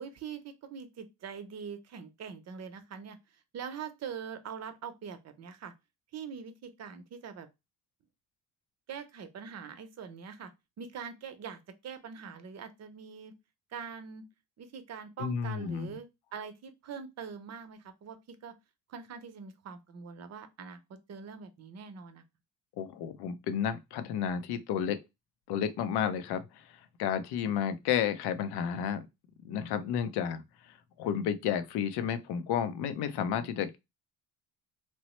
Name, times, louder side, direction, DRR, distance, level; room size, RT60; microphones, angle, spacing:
voice 1, 0.0-3.2 3.5-5.7 6.1-7.5 8.9-10.5 10.8-13.3 13.7-14.3 14.6-18.5 18.9-22.2, right 6 dB, 40° right, 0.6 m, -43 dB
voice 2, 15.2-16.0 22.8-25.0 25.5-26.5 27.0-29.0 29.4-30.4 31.0-33.8, left 8 dB, 75° left, 0.6 m, -31 dB
3.0 x 2.0 x 3.0 m
cardioid pair, 105°, 39 cm